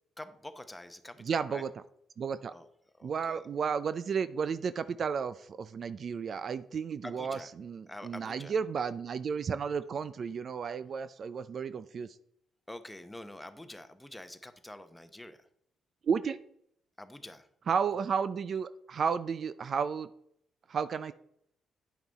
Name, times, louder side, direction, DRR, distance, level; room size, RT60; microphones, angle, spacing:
voice 1, 0.2-1.6 2.5-2.7 3.0-3.5 7.0-7.5 7.9-8.5 12.7-15.5 17.0-17.5, left 1 dB, 10° left, 9 dB, 0.9 m, -46 dB
voice 2, 1.2-1.7 2.2-2.5 3.0-12.2 16.0-16.4 17.7-20.1 20.7-21.1, right 6 dB, 55° right, 14 dB, 0.4 m, -33 dB
9.2 x 5.9 x 4.1 m, 0.71 s
cardioid pair, 75°, 0 cm